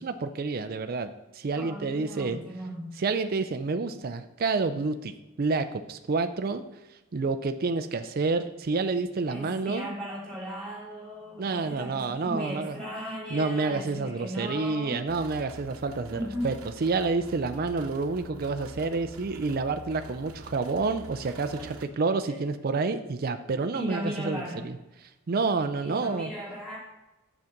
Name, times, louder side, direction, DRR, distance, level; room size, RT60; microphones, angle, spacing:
voice 1, 0.0-2.4 3.0-5.1 5.4-6.6 7.1-9.9 11.4-12.8 13.3-16.5 16.8-24.8 25.3-26.3, right 4 dB, 40° right, 8 dB, 0.4 m, -29 dB
voice 2, 1.5-2.9 9.3-15.0 16.1-16.5 21.6-21.7 22.3-22.4 23.7-24.7 25.8-26.8, equal, 5° left, -6 dB, 2.8 m, -37 dB
sound 1, 15.1-21.9, right 1 dB, 75° right, 0.9 m, -45 dB
7.2 x 6.3 x 5.8 m, 1.0 s
head